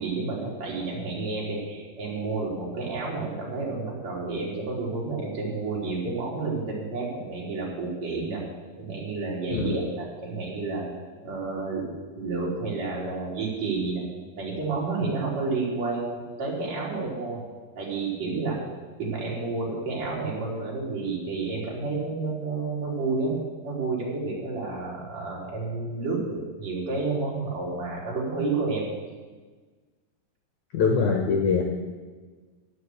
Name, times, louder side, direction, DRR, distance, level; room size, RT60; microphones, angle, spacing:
voice 1, 0.0-8.4 8.8-10.9 11.2-11.9 12.2-14.0 14.4-17.4 17.8-18.6 19.0-23.3 23.6-28.9, right 3 dB, 45° right, -4 dB, 4.5 m, -30 dB
voice 2, 30.7-31.6, left 5 dB, 65° left, 2 dB, 2.0 m, -23 dB
17.5 x 6.5 x 8.0 m, 1.4 s
omnidirectional pair, 4.7 m